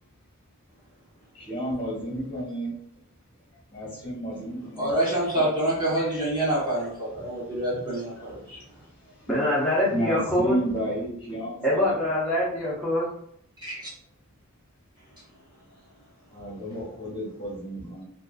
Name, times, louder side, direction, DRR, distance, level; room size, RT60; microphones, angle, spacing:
voice 1, 1.3-2.7 3.7-4.9 6.8-6.9 7.2-7.4 8.4-9.3 9.9-12.0 16.3-18.0, equal, 20° left, -6 dB, 1.2 m, -32 dB
voice 2, 4.8-8.6 13.6-13.9, right 1 dB, 20° right, -7 dB, 0.9 m, -27 dB
voice 3, 9.3-10.6 11.6-13.1, left 1 dB, 5° left, -8 dB, 0.4 m, -24 dB
2.6 x 2.3 x 2.3 m, 0.65 s
head